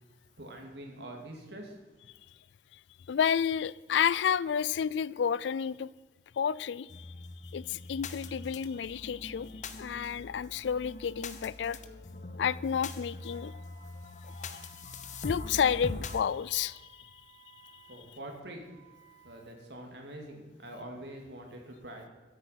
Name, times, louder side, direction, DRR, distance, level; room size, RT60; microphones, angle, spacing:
voice 1, 0.4-1.8 17.9-18.6 19.2-22.1, right 1 dB, 70° right, 2 dB, 2.4 m, -45 dB
voice 2, 3.1-5.9 6.4-7.1 7.4-11.8 12.4-13.5 14.2-14.6 15.2-17.1, left 7 dB, 85° left, 20 dB, 0.3 m, -31 dB
sound 1, 6.9-16.2, left 3 dB, 45° left, 0.8 m, -42 dB
Wind instrument woodwind instrument, 13.2-19.4, right 10 dB, 20° right, 3.2 m, -60 dB
13.0 x 8.0 x 5.8 m, 1.2 s
head